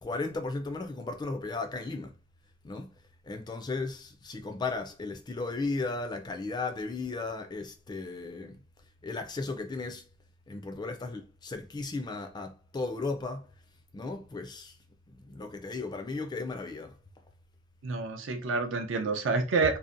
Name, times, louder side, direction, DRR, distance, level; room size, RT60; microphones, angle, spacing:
voice 1, 0.0-2.1 2.6-2.9 3.2-8.6 9.0-10.1 10.5-13.5 13.9-14.7 15.2-17.0, left 3 dB, 20° left, 0.3 m, -35 dB
voice 2, 17.8-19.8, right 4 dB, 75° right, 0.5 m, -28 dB
2.7 x 2.1 x 2.5 m
head